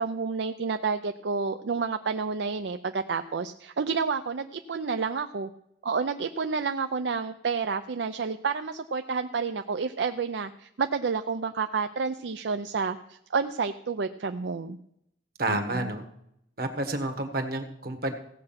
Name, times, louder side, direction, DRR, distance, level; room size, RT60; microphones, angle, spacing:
voice 1, 0.0-5.5 5.8-14.8 15.5-15.9, right 5 dB, 70° right, 8 dB, 0.5 m, -30 dB
voice 2, 15.4-16.0 16.6-18.1, right 1 dB, 50° right, 6 dB, 1.5 m, -29 dB
16.0 x 7.7 x 5.8 m, 0.77 s
head